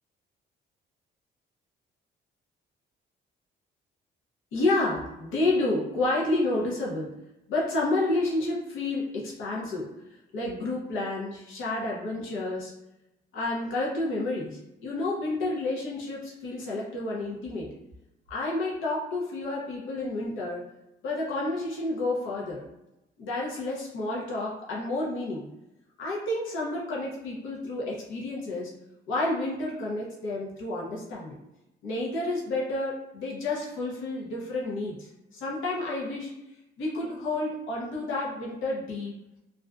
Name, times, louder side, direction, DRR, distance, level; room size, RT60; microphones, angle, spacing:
voice 1, 4.5-7.2 7.5-9.9 10.3-12.7 13.3-17.7 18.3-20.7 21.0-22.6 23.2-25.5 26.0-28.7 29.1-31.4 31.8-36.3 36.8-39.1, left 2 dB, 85° left, -4 dB, 0.7 m, -30 dB
2.5 x 2.2 x 2.4 m, 0.91 s
cardioid pair, 90°, 20 cm